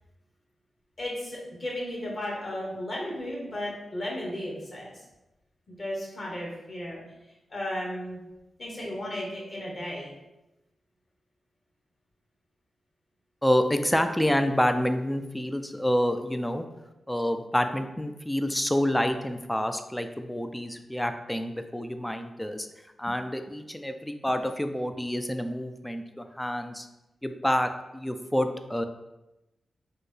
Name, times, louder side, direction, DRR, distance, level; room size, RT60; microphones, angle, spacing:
voice 1, 1.0-4.9 5.7-7.0 7.5-8.2 8.6-10.1, left 1 dB, 45° left, -3 dB, 1.3 m, -34 dB
voice 2, 13.4-16.6 17.1-22.7 23.0-26.9 27.2-28.8, equal, 5° left, 8 dB, 0.3 m, -28 dB
4.2 x 2.2 x 3.2 m, 0.97 s
cardioid pair, 70°, 0 cm